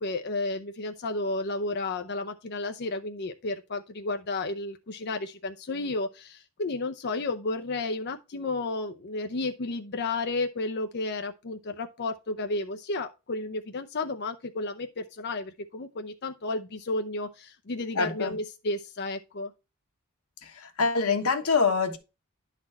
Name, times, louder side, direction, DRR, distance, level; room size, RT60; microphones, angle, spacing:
voice 1, 0.0-19.5, left 2 dB, 50° left, 0.6 m, -32 dB
voice 2, 17.9-18.3 20.4-22.0, left 5 dB, 85° left, 1.2 m, -25 dB
10.5 x 4.2 x 4.2 m
head